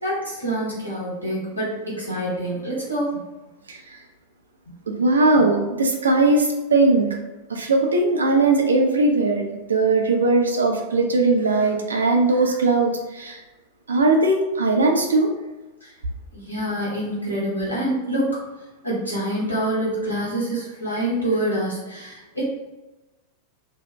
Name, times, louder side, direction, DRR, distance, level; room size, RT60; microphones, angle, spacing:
voice 1, 0.0-3.2 15.8-15.9 16.3-18.4 18.8-22.5, right 1 dB, 90° left, -7 dB, 1.1 m, -26 dB
voice 2, 3.7-4.0 4.9-7.1 7.5-13.4 13.9-15.3, right 2 dB, 70° right, 2 dB, 0.5 m, -19 dB
2.6 x 2.1 x 3.3 m, 1.1 s
figure-of-eight pair, 90°, 0 cm